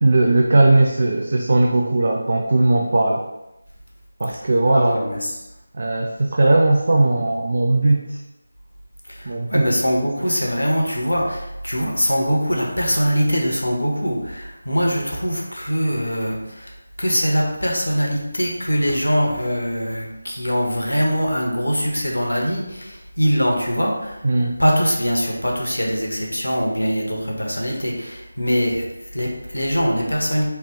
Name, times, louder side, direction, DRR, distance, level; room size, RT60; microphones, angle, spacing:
voice 1, 0.0-3.2 4.2-5.0 5.7-8.2 9.3-9.7 24.2-24.6, right 2 dB, 45° right, 1 dB, 0.3 m, -18 dB
voice 2, 4.7-5.3 9.1-24.2 24.6-30.5, equal, 75° left, -1 dB, 0.9 m, -22 dB
3.3 x 2.3 x 3.5 m, 0.93 s
figure-of-eight pair, 160°, 0 cm